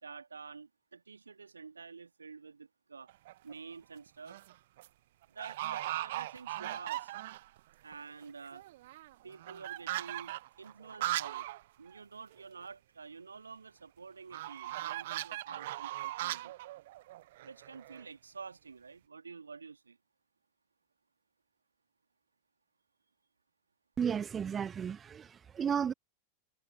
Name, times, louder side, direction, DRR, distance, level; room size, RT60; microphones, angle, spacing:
voice 1, 0.0-3.1 3.4-4.4 5.3-7.1 7.8-8.6 9.2-11.5 11.8-16.5 17.4-20.0, right 5 dB, 75° right, 2.4 m, -49 dB
sound 1, 3.1-3.5 4.1-4.5 4.8-4.9 5.4-7.6 7.9-8.0 8.2-11.6 11.9-12.0 12.3-12.4 14.3-18.0, right 16 dB, 55° right, 0.6 m, -39 dB
voice 2, 24.0-25.9, right 7 dB, 20° right, 0.9 m, -33 dB
figure-of-eight pair, 90°, 0 cm